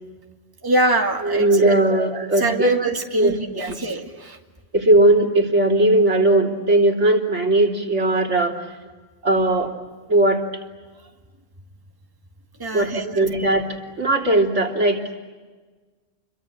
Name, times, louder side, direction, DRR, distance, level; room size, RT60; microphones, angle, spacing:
voice 1, 0.6-4.4 12.6-13.2, right 2 dB, 15° right, 2 dB, 2.1 m, -24 dB
voice 2, 1.2-2.7 3.1-3.8 4.7-8.6 9.2-9.7 10.1-10.4 12.7-15.2, right 2 dB, 70° right, 1 dB, 3.6 m, -18 dB
29.5 x 23.5 x 8.7 m, 1.3 s
omnidirectional pair, 1.3 m